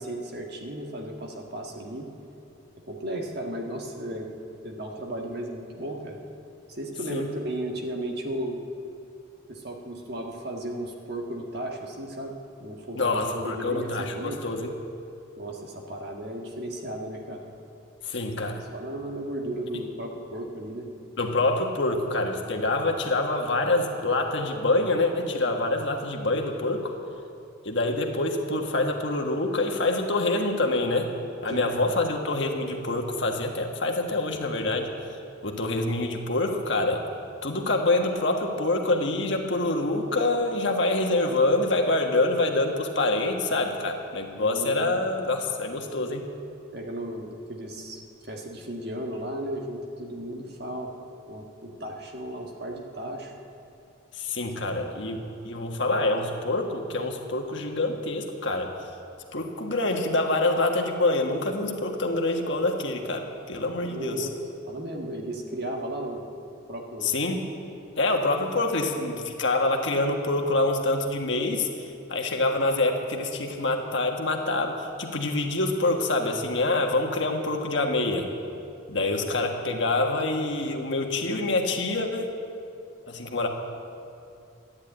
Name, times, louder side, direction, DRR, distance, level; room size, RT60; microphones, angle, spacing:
voice 1, 0.0-2.1 2.9-4.3 4.6-6.2 6.7-8.6 9.5-12.3 12.6-14.4 15.4-17.4 18.5-20.9 31.5-32.0 44.4-45.0 46.7-50.9 51.3-53.3 63.8-64.4 64.7-66.2 66.7-67.1, right 1 dB, 50° right, 1 dB, 1.7 m, -35 dB
voice 2, 12.9-14.7 18.0-18.6 21.2-26.9 27.6-31.1 31.4-34.9 35.4-37.0 37.4-46.3 54.1-58.8 59.3-64.3 67.0-67.4 68.0-78.3 78.9-82.3 83.1-83.5, left 2 dB, 60° left, 2 dB, 1.5 m, -26 dB
13.0 x 10.5 x 9.0 m, 2.6 s
head